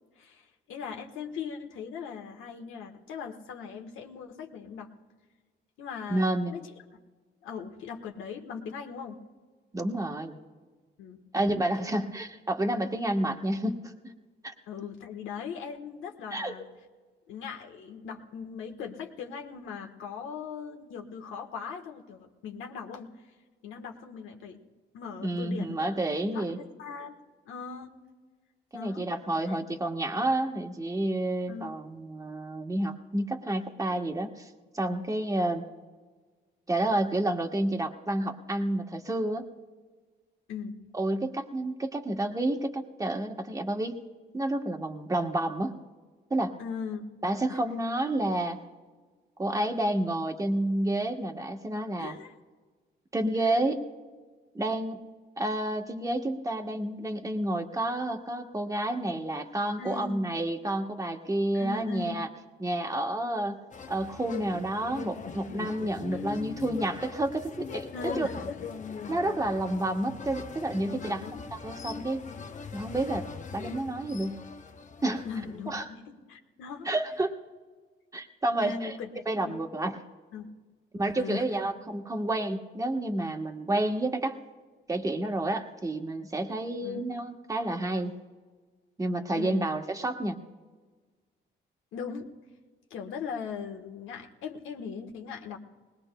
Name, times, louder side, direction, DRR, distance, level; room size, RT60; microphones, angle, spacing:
voice 1, 0.2-4.9 5.8-6.7 7.4-9.2 11.0-11.2 11.8-11.9 14.7-16.6 17.3-23.1 23.6-24.7 24.9-25.9 26.3-27.2 27.5-28.0 28.7-29.1 29.4-29.6 31.5-31.7 40.5-40.8 46.6-47.0 47.5-47.6 51.9-52.3 53.4-53.6 59.8-60.2 61.5-62.2 66.1-66.3 67.9-68.6 70.9-71.4 75.2-76.9 78.6-79.1 79.4-79.6 80.3-80.5 81.2-81.4 86.8-87.0 89.3-89.7 91.9-92.3 92.9-95.6, left 6 dB, 85° left, 2 dB, 1.3 m, -39 dB
voice 2, 6.1-6.5 9.7-10.4 11.3-13.9 14.4-14.5 16.3-16.5 25.2-26.6 28.7-34.5 34.7-35.6 36.7-39.4 40.9-43.9 44.3-45.8 46.3-46.5 47.2-48.6 49.4-52.1 53.1-53.8 54.5-55.0 55.4-62.3 62.6-63.6 63.9-67.9 68.2-68.3 69.1-71.2 71.5-72.2 72.7-73.3 73.5-74.4 75.0-75.2 75.7-75.8 76.8-77.3 78.1-79.0 79.3-80.0 80.9-84.4 84.9-88.1 89.0-90.4, right 1 dB, 15° right, 4 dB, 1.2 m, -30 dB
sound 1, 63.7-75.8, left 5 dB, 40° left, 0.7 m, -41 dB
20.0 x 20.0 x 2.2 m, 1.4 s
cardioid pair, 90°, 20 cm